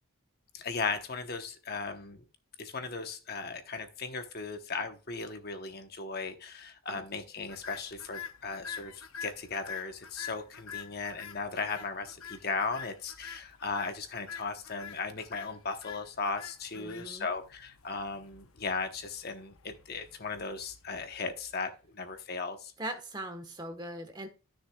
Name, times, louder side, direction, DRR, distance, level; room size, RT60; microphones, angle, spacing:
voice 1, 0.5-2.2 2.6-22.7, left 4 dB, 45° left, 7 dB, 1.0 m, -37 dB
sound 1, 7.4-21.7, left 7 dB, 80° left, 0.9 m, -47 dB
voice 2, 16.8-17.3 22.8-24.3, right 1 dB, 20° right, 8 dB, 1.1 m, -40 dB
13.0 x 6.5 x 2.3 m, 0.33 s
head